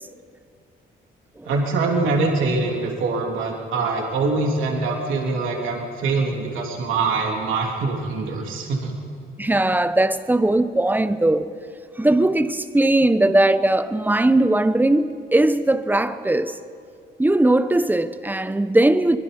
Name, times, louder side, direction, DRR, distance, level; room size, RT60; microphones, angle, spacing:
voice 1, 1.4-8.9, right 3 dB, 85° right, 3.4 m, -23 dB
voice 2, 9.4-11.5 12.0-16.6 17.2-19.2, right 1 dB, 10° right, 0.9 m, -19 dB
25.0 x 21.5 x 5.4 m
cardioid pair, 90°, 20 cm